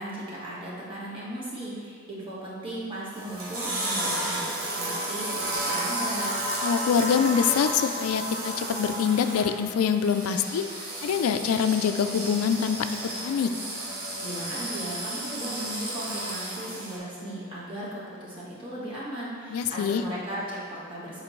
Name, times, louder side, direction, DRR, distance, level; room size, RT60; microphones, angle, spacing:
voice 1, 0.0-6.3 14.2-21.2, right 1 dB, 25° right, -8 dB, 1.4 m, -37 dB
sound 1, 3.1-17.0, right 1 dB, 70° right, 1.1 m, -32 dB
voice 2, 6.6-10.7 11.0-12.8 13.2-13.5 19.5-20.0, left 7 dB, 90° left, 8 dB, 0.3 m, -24 dB
7.5 x 4.3 x 3.1 m, 2.2 s
head